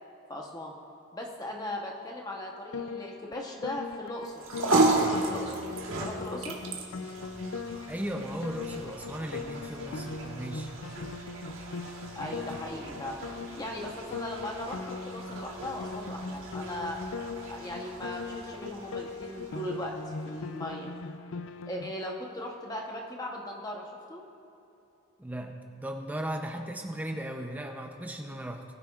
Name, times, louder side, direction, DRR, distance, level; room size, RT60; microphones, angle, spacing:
voice 1, 0.3-0.7 1.1-5.7 6.0-6.6 12.1-13.2 13.6-17.0 17.5-19.9 20.3-20.9 21.7-23.8 24.1-24.2, left 1 dB, 20° left, 0 dB, 0.9 m, -38 dB
Piano, 2.7-21.9, left 4 dB, 75° left, 0.4 m, -40 dB
sound 1, 4.2-20.7, right 2 dB, 75° right, 1.4 m, -34 dB
voice 2, 7.9-10.7 25.2-28.6, right 1 dB, 10° right, 3 dB, 0.6 m, -37 dB
20.0 x 9.2 x 2.4 m, 2.8 s
head